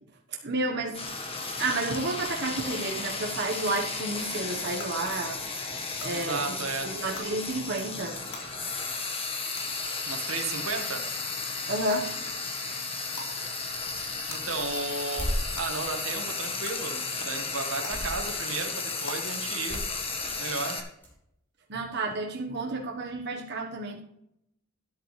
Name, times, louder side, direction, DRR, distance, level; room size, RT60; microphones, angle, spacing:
voice 1, 0.3-1.0 1.6-5.4 6.0-6.6 6.8-8.2 11.7-12.1 21.7-24.0, right 2 dB, 55° right, 0 dB, 1.3 m, -31 dB
Frying (food), 0.9-20.8, left 4 dB, 25° left, 1.5 m, -34 dB
sound 1, 2.4-2.5 3.6-3.7 4.8-4.9 6.0-6.1 7.1-7.3 8.3-8.4 9.5-9.6 10.8-10.9 11.9-12.0 13.1-13.3 14.3-14.4 15.6-15.7 16.6-16.7 17.8-17.9 19.0-19.1, left 3 dB, 60° left, 3.0 m, -40 dB
voice 2, 6.1-6.9 10.1-11.0 14.3-19.9 20.2-20.8, right 4 dB, 90° right, 4 dB, 1.8 m, -34 dB
sound 2, 13.7-15.5 17.2-17.6 17.9-18.2 18.5-19.1 19.6-21.1, equal, 10° left, 4.2 m, -36 dB
12.5 x 10.5 x 3.3 m, 0.78 s
head